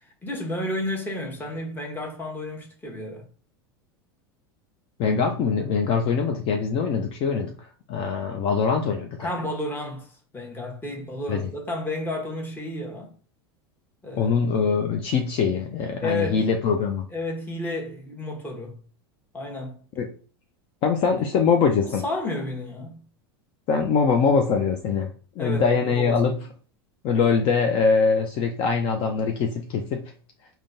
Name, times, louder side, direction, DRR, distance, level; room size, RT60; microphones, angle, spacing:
voice 1, 0.2-3.3 9.2-13.1 14.0-14.3 16.0-16.4 17.1-18.8 19.3-19.8 21.2-21.3 21.8-23.0 25.4-26.4, left 1 dB, 15° left, 1.0 m, -32 dB
voice 2, 5.0-7.5 7.9-9.3 11.3-11.4 14.2-17.1 20.0-20.1 20.8-22.0 23.7-25.1 25.4-26.4 27.0-30.0, left 5 dB, 45° left, 0.5 m, -23 dB
3.6 x 2.2 x 2.6 m
hypercardioid pair, 100°, 13 cm